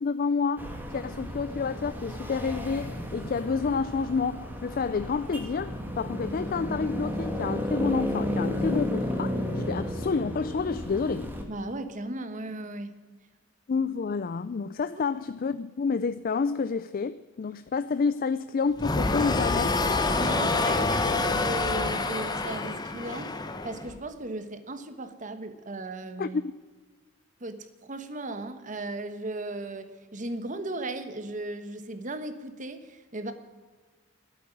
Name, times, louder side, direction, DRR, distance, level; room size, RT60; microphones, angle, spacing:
voice 1, 0.0-11.3 13.7-19.8 26.2-26.5, left 5 dB, 45° left, 0.4 m, -29 dB
sound 1, 0.6-11.4, left 1 dB, 10° right, 1.7 m, -33 dB
voice 2, 11.5-12.9 20.2-23.4 23.6-26.4 27.4-33.3, right 2 dB, 40° right, 1.2 m, -36 dB
sound 2, 18.8-24.0, left 3 dB, 20° left, 0.9 m, -27 dB
12.5 x 8.5 x 9.6 m
head